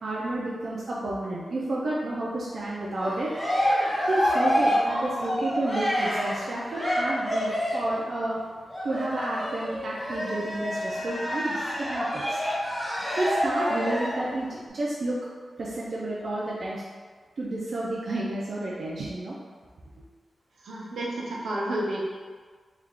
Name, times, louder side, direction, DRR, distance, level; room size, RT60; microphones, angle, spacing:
voice 1, 0.0-3.3 4.1-8.4 8.8-12.4 13.2-15.2 15.6-16.8 17.4-19.3, right 1 dB, 60° right, -6 dB, 0.4 m, -31 dB
Cheering, 2.9-8.0 8.7-14.3, equal, 5° left, 0.8 m, -27 dB
voice 2, 20.6-22.0, right 1 dB, 85° right, -5 dB, 0.7 m, -30 dB
3.3 x 2.3 x 3.6 m, 1.5 s
wide cardioid pair, 135°, 0 cm